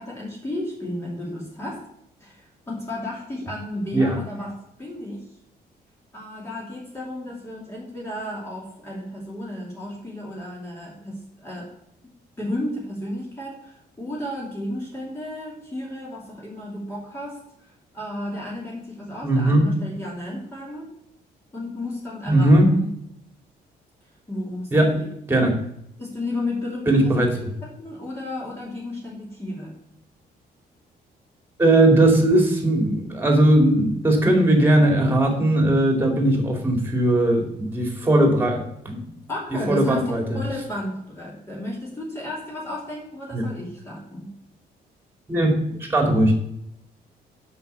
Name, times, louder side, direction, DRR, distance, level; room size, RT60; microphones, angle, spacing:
voice 1, 0.0-1.8 2.2-5.2 6.1-11.7 12.4-17.4 17.9-20.9 21.5-22.9 24.3-25.1 26.0-27.3 27.6-29.8 39.3-44.3, left 1 dB, 15° left, -5 dB, 2.8 m, -33 dB
voice 2, 19.2-19.7 22.3-22.7 24.7-24.9 25.3-25.5 26.9-27.3 31.6-39.1 39.7-40.4 43.3-43.4 45.3-46.3, right 1 dB, 15° right, 3 dB, 2.6 m, -19 dB
8.0 x 6.4 x 8.2 m, 0.75 s
cardioid pair, 160°, 17 cm